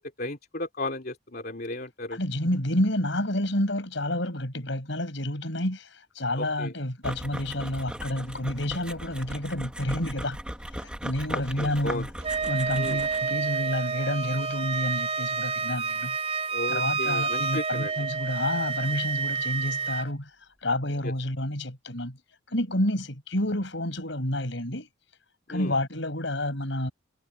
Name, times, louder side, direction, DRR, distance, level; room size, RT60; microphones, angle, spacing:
voice 1, 0.2-2.2 6.4-6.7 11.3-12.1 12.7-13.0 16.5-17.9 21.0-21.1 25.5-25.7, left 2 dB, 50° left, 3.0 m, -35 dB
voice 2, 2.1-10.4 10.7-12.1 12.4-16.2 16.7-20.3 20.6-22.2 22.5-24.9 25.5-26.9, left 1 dB, 70° left, 5.8 m, -29 dB
sound 1, 7.0-13.4, equal, 5° right, 1.9 m, -38 dB
Wind instrument woodwind instrument, 12.2-20.1, right 5 dB, 30° right, 3.9 m, -29 dB
head